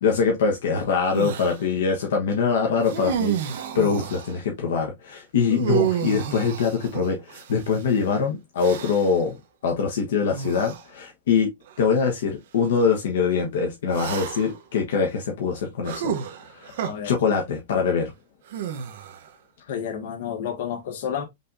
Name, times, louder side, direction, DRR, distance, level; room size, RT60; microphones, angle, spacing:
voice 1, 0.0-11.5 11.8-16.1 16.5-16.7 17.0-18.1, left 5 dB, 70° left, 1.2 m, -23 dB
sound 1, 1.1-1.6 2.8-4.4 5.5-7.8 8.6-9.2 10.3-10.8 11.7-11.8 13.9-14.6 15.8-16.9 18.5-19.3, right 9 dB, 55° right, 0.9 m, -30 dB
voice 2, 19.6-21.2, left 8 dB, 55° left, 1.5 m, -30 dB
5.3 x 3.4 x 2.6 m
supercardioid pair, 175°, 0 cm